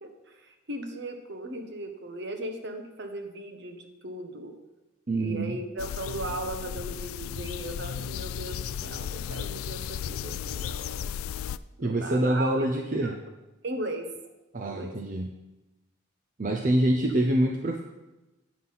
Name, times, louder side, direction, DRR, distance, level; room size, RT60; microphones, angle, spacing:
voice 1, 0.0-4.5 5.1-11.1 11.8-12.5 13.0-13.1 13.6-14.1 14.6-14.9 16.8-16.9, right 1 dB, 55° right, 5 dB, 1.1 m, -37 dB
voice 2, 5.1-5.6 11.8-13.2 14.5-15.3 16.4-17.8, right 1 dB, 40° right, 2 dB, 0.6 m, -26 dB
sound 1, 5.8-11.6, left 8 dB, 80° left, 0.3 m, -35 dB
9.5 x 5.8 x 5.7 m, 1.0 s
head